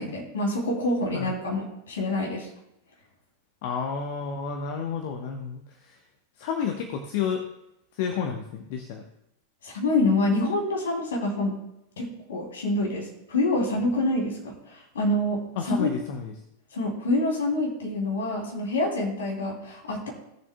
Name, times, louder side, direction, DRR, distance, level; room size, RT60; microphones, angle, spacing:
voice 1, 0.0-2.5 9.6-11.5 12.0-15.9 16.7-20.1, left 2 dB, 65° left, -1 dB, 3.0 m, -26 dB
voice 2, 3.6-6.0 6.4-7.4 7.9-9.0 15.6-16.3, left 6 dB, 50° left, 4 dB, 1.0 m, -31 dB
17.5 x 7.3 x 2.2 m, 0.83 s
figure-of-eight pair, 90°, 0 cm